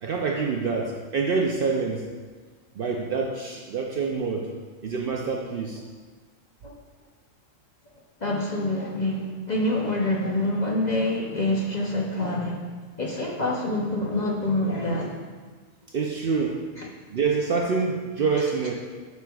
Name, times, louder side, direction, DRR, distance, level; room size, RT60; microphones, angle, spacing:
voice 1, 0.0-2.0 2.8-4.5 4.8-5.8 15.9-16.6 17.1-18.7, right 4 dB, 60° right, 0 dB, 0.6 m, -26 dB
voice 2, 8.2-12.6 13.0-15.2 16.8-16.9, left 1 dB, 45° left, -2 dB, 0.7 m, -26 dB
9.4 x 6.3 x 2.3 m, 1.5 s
omnidirectional pair, 1.4 m